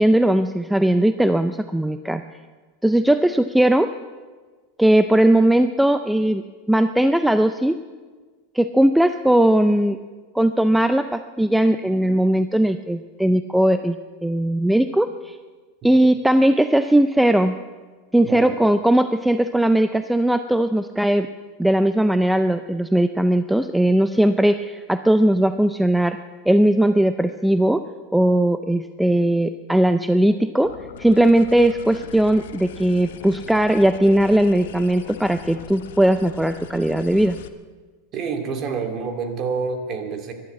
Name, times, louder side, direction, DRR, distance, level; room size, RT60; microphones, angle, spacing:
voice 1, 0.0-2.2 2.8-3.9 4.8-6.4 6.7-7.8 8.5-10.0 10.3-15.4 15.8-17.6 18.1-21.3 21.6-26.2 26.5-27.8 28.1-30.7 31.0-37.4, right 1 dB, 5° right, 10 dB, 0.5 m, -18 dB
voice 2, 18.2-18.6 38.1-40.3, right 5 dB, 35° right, 6 dB, 2.3 m, -28 dB
sound 1, 30.6-37.5, left 9 dB, 80° left, 1.0 m, -40 dB
14.5 x 11.5 x 8.3 m, 1.4 s
supercardioid pair, 135°, 0 cm